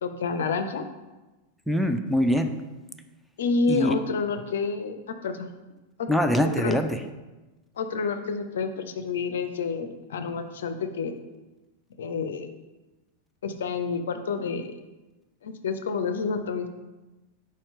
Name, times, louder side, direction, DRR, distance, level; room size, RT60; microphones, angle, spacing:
voice 1, 0.0-0.9 3.4-5.5 6.0-6.1 6.4-6.8 7.8-11.2 12.0-12.5 13.4-14.7 15.4-16.7, left 4 dB, 60° left, 8 dB, 0.5 m, -29 dB
voice 2, 1.7-2.5 3.7-4.0 6.1-7.0, equal, ahead, 4 dB, 0.4 m, -23 dB
4.8 x 4.3 x 5.3 m, 1.1 s
figure-of-eight pair, 90°, 0 cm